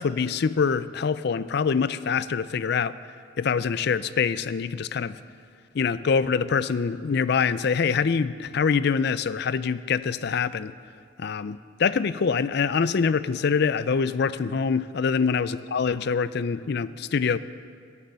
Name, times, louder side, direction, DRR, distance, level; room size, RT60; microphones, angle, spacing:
voice 1, 0.0-2.9 3.4-5.2 5.7-10.7 11.2-17.4, left 5 dB, 55° left, 15 dB, 0.4 m, -25 dB
17.5 x 8.6 x 6.8 m, 2.2 s
head